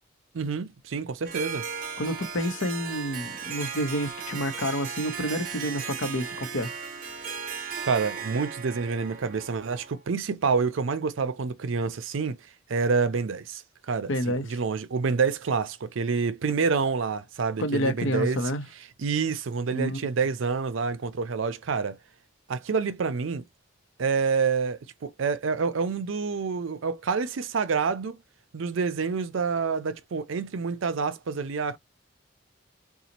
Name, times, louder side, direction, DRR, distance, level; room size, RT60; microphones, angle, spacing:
voice 1, 0.3-1.7 7.8-12.4 12.7-18.4 19.0-22.0 22.5-23.5 24.0-28.2 28.5-31.8, right 5 dB, 75° right, 0.5 m, -28 dB
Harp, 1.3-10.0, right 6 dB, 45° right, 0.9 m, -36 dB
voice 2, 2.0-6.7 14.1-14.5 17.6-18.6 19.7-20.0, equal, 75° left, 0.9 m, -29 dB
3.9 x 2.3 x 2.9 m
head